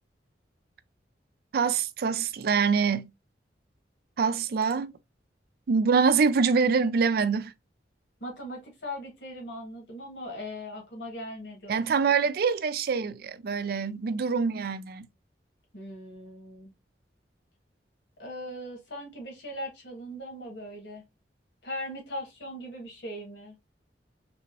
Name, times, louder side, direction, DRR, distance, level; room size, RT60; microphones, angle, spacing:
voice 1, 1.5-3.1 4.2-4.9 5.7-7.5 11.7-15.1, right 5 dB, 60° right, 0.4 m, -25 dB
voice 2, 8.2-11.8 15.7-16.7 18.2-21.0 21.6-23.6, equal, 85° left, 1.6 m, -39 dB
3.4 x 2.9 x 2.9 m
head